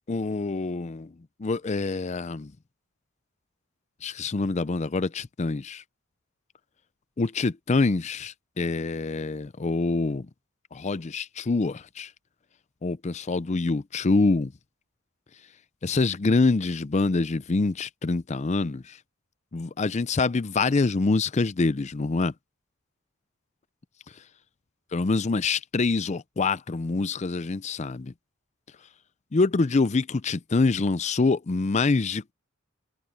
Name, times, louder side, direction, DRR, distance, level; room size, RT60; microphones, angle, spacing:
voice 1, 0.1-1.1 1.4-2.5 4.0-5.8 7.2-10.3 10.7-12.1 12.8-14.5 15.8-19.0 19.5-22.3 24.9-28.1 29.3-32.3, left 3 dB, 35° left, 0.5 m, -25 dB
head